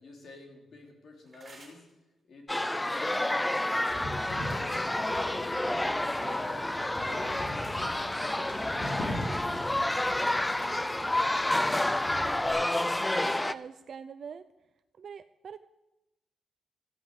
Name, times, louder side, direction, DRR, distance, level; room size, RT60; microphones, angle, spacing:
voice 1, 0.0-1.9 2.3-5.6 5.9-6.7 7.0-10.9, left 2 dB, 50° left, 2 dB, 3.3 m, -49 dB
sound 1, 1.3-1.9 2.7-3.0 4.2-4.9 6.2-6.7 7.2-7.3 7.6-7.9 8.2-8.9 9.2-11.0 11.3-11.5, right 3 dB, 25° right, 3.7 m, -55 dB
sound 2, 2.5-13.5, left 1 dB, 10° left, 0.4 m, -29 dB
Wind / Boat Water vehicle, 3.9-12.5, left 1 dB, 85° left, 4.0 m, -41 dB
voice 2, 13.0-14.5 15.0-15.6, right 7 dB, 55° right, 10 dB, 0.5 m, -44 dB
14.0 x 9.2 x 7.9 m, 0.97 s
wide cardioid pair, 150°, 0 cm